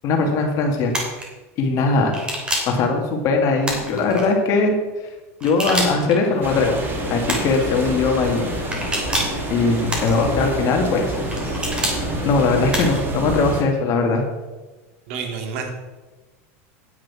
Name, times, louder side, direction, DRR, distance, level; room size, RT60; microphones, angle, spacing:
voice 1, 0.0-1.0 1.6-2.1 2.7-4.8 5.4-6.8 7.1-8.5 9.5-11.1 12.2-14.2, left 3 dB, 45° left, 3 dB, 2.2 m, -20 dB
sound 1, 0.9-1.2 2.1-2.8 3.6-4.2 5.4-6.2 7.3-7.6 8.7-9.4 9.9-10.5 11.3-12.0 12.7-13.1, right 1 dB, 15° right, 3.1 m, -26 dB
sound 2, 6.2-13.0, left 6 dB, 90° left, 1.4 m, -34 dB
sound 3, 6.4-13.6, right 3 dB, 30° right, 1.7 m, -28 dB
voice 2, 15.1-15.7, right 5 dB, 70° right, 4 dB, 2.2 m, -29 dB
9.8 x 7.6 x 6.0 m, 1.2 s
supercardioid pair, 125°, 7 cm